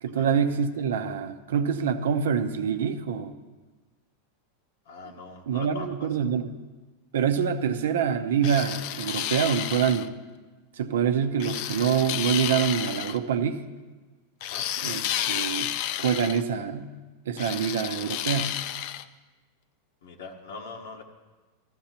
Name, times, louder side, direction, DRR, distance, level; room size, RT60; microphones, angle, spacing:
voice 1, 0.0-3.3 5.5-6.5 7.1-10.1 10.8-13.6 14.8-15.7 16.0-16.9 17.3-18.6, right 7 dB, 90° right, 8 dB, 0.7 m, -26 dB
voice 2, 4.9-6.1 14.5-14.6 20.0-21.0, left 3 dB, 90° left, 0 dB, 1.2 m, -41 dB
sound 1, 8.4-10.1 11.4-13.2 14.4-16.4 17.4-19.0, left 12 dB, 55° left, 0.4 m, -31 dB
15.0 x 14.0 x 2.9 m, 1.3 s
supercardioid pair, 135°, 0 cm